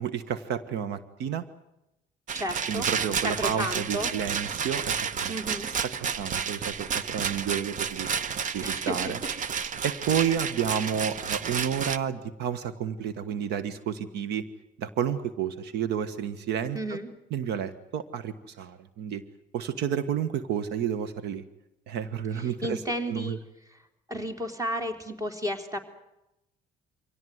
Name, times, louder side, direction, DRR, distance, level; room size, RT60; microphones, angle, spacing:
voice 1, 0.0-1.4 2.7-5.4 6.0-8.1 8.5-9.2 9.8-14.4 14.8-16.8 17.3-19.2 19.5-21.4 21.9-22.8 23.1-23.4, right 8 dB, 80° right, 14 dB, 1.4 m, -30 dB
voice 2, 2.3-2.9 3.2-4.1 5.3-5.7 8.6-9.0 16.7-17.1 22.3-23.4 23.7-23.8 24.1-25.8, equal, 20° right, 7 dB, 3.7 m, -32 dB
Rattle, 2.3-12.0, right 7 dB, 50° right, 1.0 m, -31 dB
25.0 x 17.5 x 9.5 m, 0.91 s
cardioid pair, 110°, 17 cm